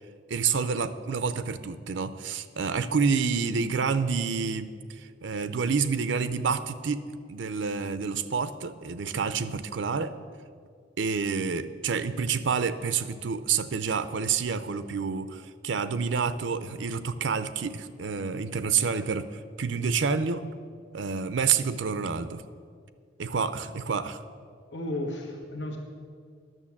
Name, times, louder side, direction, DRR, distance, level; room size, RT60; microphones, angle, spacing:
voice 1, 0.3-10.1 11.0-20.4 20.9-22.4 23.2-24.2, right 5 dB, 90° right, 13 dB, 0.5 m, -28 dB
voice 2, 24.7-25.8, left 1 dB, 70° left, 1 dB, 1.2 m, -33 dB
11.0 x 6.8 x 7.2 m, 2.1 s
head